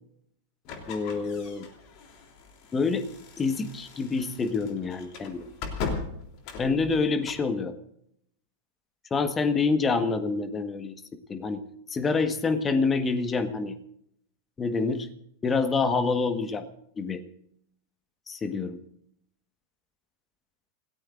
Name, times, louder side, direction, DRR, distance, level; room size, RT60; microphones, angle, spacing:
sound 1, 0.6-7.5, left 4 dB, 45° left, 3.3 m, -39 dB
voice 1, 0.9-1.7 2.7-3.1 3.4-5.5 6.6-7.7 9.1-10.9 11.3-11.6 11.9-13.7 14.6-15.1 15.4-16.6 17.0-17.2 18.3-18.8, left 4 dB, 20° left, 9 dB, 1.5 m, -27 dB
28.0 x 18.0 x 2.6 m, 0.72 s
figure-of-eight pair, 90°, 0 cm